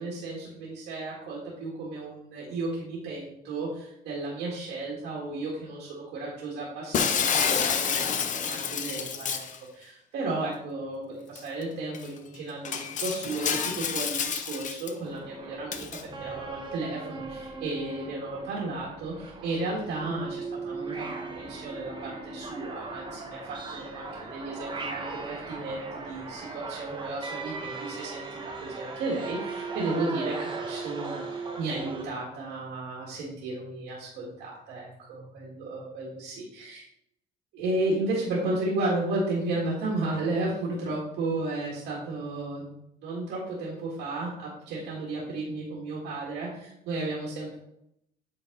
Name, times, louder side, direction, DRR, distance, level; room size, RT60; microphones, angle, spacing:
voice 1, 0.0-9.4 9.7-28.3 28.6-36.8 37.5-47.6, right 2 dB, 85° right, -4 dB, 2.0 m, -33 dB
Shatter, 6.9-9.6 11.4-11.5 11.9-12.1 12.6-14.9 15.7-16.0, left 7 dB, 50° left, 0.8 m, -28 dB
sound 1, 15.0-32.0, right 4 dB, 30° right, 1.1 m, -38 dB
8.7 x 4.1 x 3.9 m, 0.76 s
cardioid pair, 110°, 17 cm